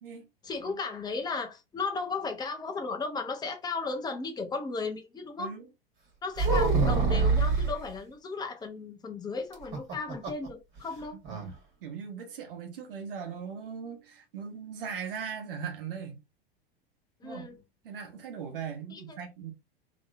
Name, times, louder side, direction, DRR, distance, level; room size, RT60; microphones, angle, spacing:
voice 1, 0.4-5.5 6.2-11.2 17.2-17.6 18.9-19.2, left 4 dB, 15° left, 0.9 m, -35 dB
sound 1, 6.4-7.8 9.5-10.5 10.8-10.9 11.2-11.5, right 4 dB, 40° right, 1.8 m, -25 dB
voice 2, 11.1-11.5 11.8-16.2 17.2-17.5 17.8-19.5, right 7 dB, 65° right, 1.2 m, -39 dB
3.7 x 3.1 x 2.6 m
figure-of-eight pair, 90°, 30 cm